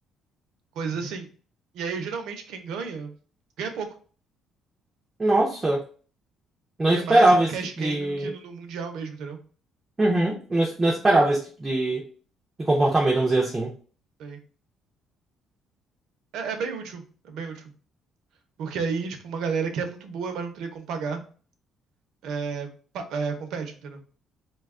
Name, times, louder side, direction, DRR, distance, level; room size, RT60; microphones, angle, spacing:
voice 1, 0.7-1.3 1.7-3.1 3.6-3.9 6.8-9.4 14.2-14.4 16.3-17.7 18.6-21.2 22.2-24.0, right 5 dB, 65° right, 5 dB, 0.6 m, -32 dB
voice 2, 5.2-5.8 6.8-7.5 7.8-8.3 10.0-12.1 12.6-13.7, right 2 dB, 15° right, -2 dB, 0.4 m, -21 dB
2.7 x 2.2 x 3.5 m, 0.40 s
cardioid pair, 175°, 0 cm